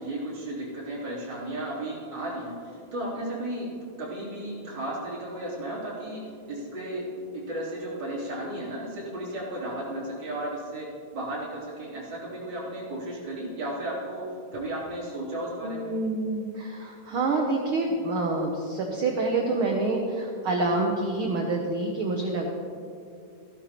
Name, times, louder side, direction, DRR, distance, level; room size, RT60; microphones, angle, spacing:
voice 1, 0.0-3.7 4.0-6.2 6.5-7.0 7.3-10.9 11.1-14.2 14.5-15.9, right 1 dB, 35° right, -8 dB, 4.0 m, -34 dB
voice 2, 15.6-22.5, right 2 dB, 85° right, 1 dB, 1.1 m, -27 dB
15.0 x 12.0 x 3.0 m, 2.5 s
omnidirectional pair, 3.5 m